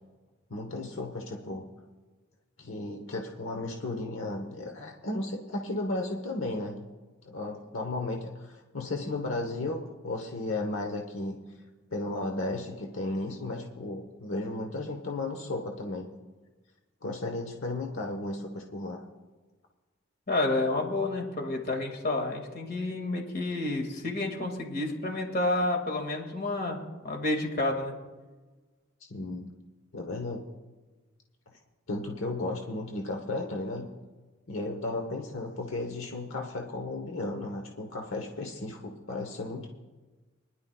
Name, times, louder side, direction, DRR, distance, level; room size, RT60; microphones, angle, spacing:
voice 1, 0.5-1.6 2.6-6.9 7.2-11.4 11.9-16.1 17.0-19.0 29.1-29.5 29.9-30.4 31.9-33.9 34.5-39.7, left 2 dB, 75° left, 2 dB, 1.1 m, -34 dB
voice 2, 20.3-26.8 27.0-27.9, left 2 dB, 45° left, 2 dB, 2.1 m, -30 dB
24.0 x 10.5 x 2.3 m, 1.3 s
head